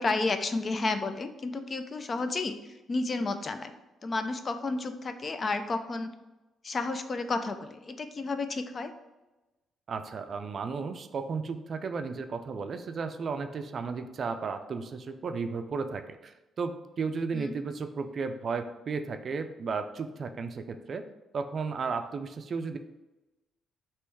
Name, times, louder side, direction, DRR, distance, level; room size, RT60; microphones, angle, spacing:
voice 1, 0.0-2.6 2.9-3.7 4.0-6.1 6.6-8.9 17.3-17.5, left 3 dB, 40° left, 8 dB, 0.4 m, -31 dB
voice 2, 9.9-16.7 17.0-21.0 21.3-22.8, right 5 dB, 50° right, 8 dB, 0.4 m, -34 dB
3.4 x 3.0 x 4.6 m, 1.0 s
cardioid pair, 90°, 0 cm